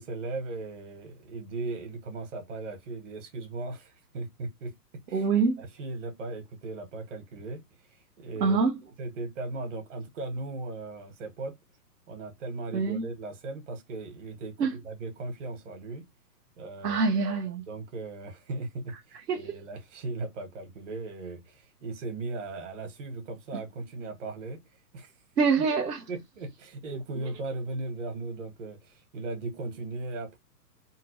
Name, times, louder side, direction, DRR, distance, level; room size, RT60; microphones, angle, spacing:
voice 1, 0.0-4.8 5.1-5.3 5.6-7.6 8.2-8.7 9.0-11.6 12.1-16.0 16.6-17.0 17.7-24.6 24.9-25.1 26.1-30.4, right 2 dB, 45° right, 1.6 m, -37 dB
voice 2, 5.1-5.6 8.4-8.8 12.7-13.0 14.6-14.8 16.8-17.6 19.3-19.4 25.4-26.0, right 5 dB, 75° right, 1.2 m, -25 dB
3.9 x 2.3 x 3.1 m
hypercardioid pair, 150°, 49 cm